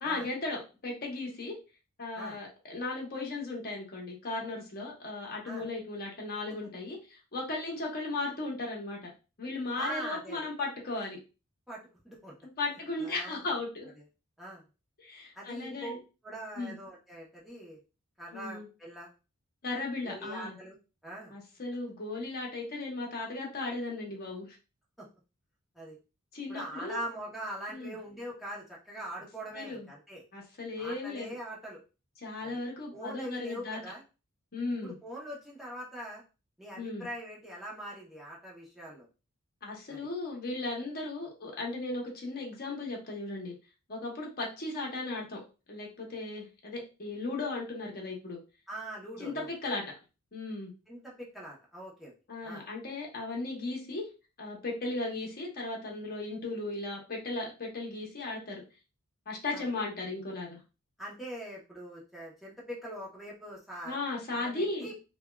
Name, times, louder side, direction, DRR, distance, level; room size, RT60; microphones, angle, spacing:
voice 1, 0.0-1.6 2.0-9.1 9.4-11.2 12.6-13.9 15.0-16.0 16.6-16.8 18.3-18.7 19.6-20.6 21.3-24.6 26.3-27.0 27.7-27.9 29.5-29.9 30.3-31.3 32.2-33.8 34.5-35.0 36.7-37.1 39.6-43.5 43.9-45.4 45.7-48.4 49.2-49.8 50.3-50.7 52.3-54.1 54.4-58.6 59.3-60.6 63.8-64.9, left 2 dB, 45° left, -1 dB, 0.9 m, -36 dB
voice 2, 9.8-10.4 11.7-12.3 12.7-13.4 14.4-14.6 15.3-16.0 16.2-17.8 18.2-19.1 20.0-20.7 21.0-21.3 25.0-25.1 25.7-26.0 26.5-30.2 30.8-31.8 32.4-32.6 32.9-34.0 34.8-36.2 36.6-39.1 39.9-40.1 48.7-49.5 50.9-52.1 52.4-52.6 59.5-59.7 61.0-64.0 64.3-64.9, right 1 dB, ahead, -6 dB, 0.8 m, -42 dB
3.4 x 2.3 x 2.2 m, 0.32 s
head